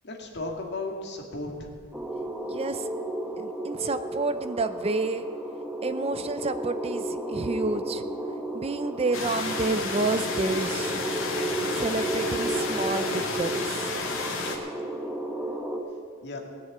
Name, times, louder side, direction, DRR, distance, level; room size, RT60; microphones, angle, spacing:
voice 1, 0.0-1.7 16.2-16.4, left 2 dB, 55° left, 1 dB, 2.2 m, -35 dB
sound 1, 1.9-15.8, right 1 dB, 5° right, 1.3 m, -33 dB
voice 2, 2.5-2.9 3.4-5.3 5.8-8.0 8.5-11.0 11.8-13.9, right 3 dB, 30° right, 10 dB, 0.5 m, -29 dB
sound 2, 9.1-14.6, left 3 dB, 80° left, 2.3 m, -32 dB
19.5 x 6.7 x 8.4 m, 2.3 s
head